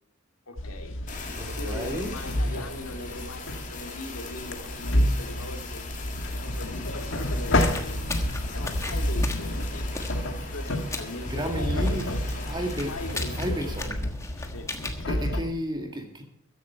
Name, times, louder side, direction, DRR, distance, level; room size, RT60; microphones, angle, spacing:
voice 1, 0.5-0.9 1.6-5.9 6.4-8.0 8.4-9.8 10.5-12.0 12.9-13.9 14.5-14.7, left 2 dB, 85° left, 5 dB, 2.3 m, -40 dB
sound 1, 0.6-15.4, left 1 dB, 60° left, 1.5 m, -30 dB
Fire, 1.1-13.9, left 4 dB, 35° left, 2.5 m, -41 dB
voice 2, 1.3-2.1 2.5-2.6 11.3-12.1 12.5-12.9 13.4-14.1 15.1-16.2, equal, 20° right, 4 dB, 2.0 m, -32 dB
sound 2, 7.3-15.0, left 2 dB, 15° left, 1.3 m, -39 dB
14.5 x 10.5 x 4.5 m, 0.72 s
head